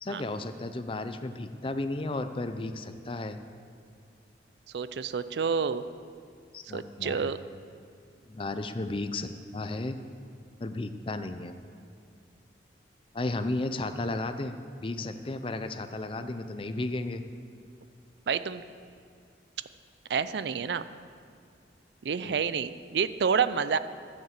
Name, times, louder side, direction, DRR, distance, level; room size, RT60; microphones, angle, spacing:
voice 1, 0.0-3.4 6.5-7.3 8.3-10.0 10.6-11.6 13.1-17.2 22.2-22.3, left 2 dB, 30° left, 8 dB, 0.5 m, -34 dB
voice 2, 4.7-5.8 6.7-7.4 18.3-18.6 20.1-20.8 22.0-23.8, right 6 dB, 70° right, 13 dB, 0.4 m, -28 dB
11.0 x 7.3 x 7.4 m, 2.4 s
head